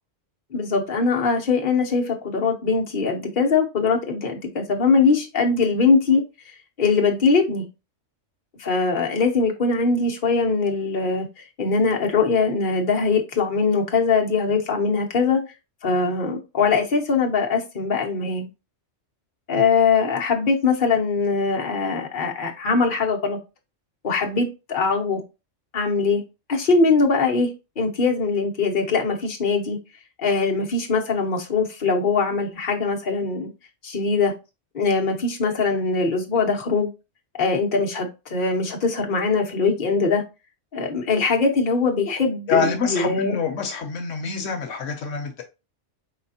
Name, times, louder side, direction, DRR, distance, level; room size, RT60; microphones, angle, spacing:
voice 1, 0.5-6.2 6.8-7.6 8.6-11.3 11.6-15.4 15.8-18.5 19.5-23.4 24.0-25.2 25.7-26.2 26.5-29.8 30.2-33.5 33.8-34.3 34.7-36.9 37.4-40.2 40.7-43.4, left 4 dB, 45° left, 1.2 m, -21 dB
voice 2, 42.5-45.4, left 5 dB, 80° left, 1.1 m, -26 dB
5.0 x 3.6 x 2.8 m
omnidirectional pair, 1.3 m